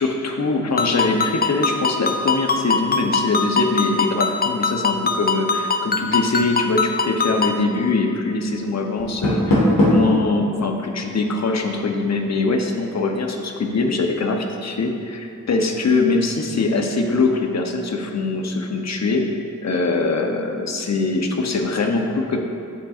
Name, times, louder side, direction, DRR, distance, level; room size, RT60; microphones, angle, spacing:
voice 1, 0.0-22.4, left 3 dB, 55° left, 3 dB, 0.7 m, -22 dB
Ringtone, 0.8-7.6, left 4 dB, 30° left, 0.4 m, -23 dB
Door, 9.0-10.2, left 1 dB, 90° left, 1.3 m, -18 dB
10.0 x 4.0 x 2.4 m, 2.6 s
cardioid pair, 50°, 33 cm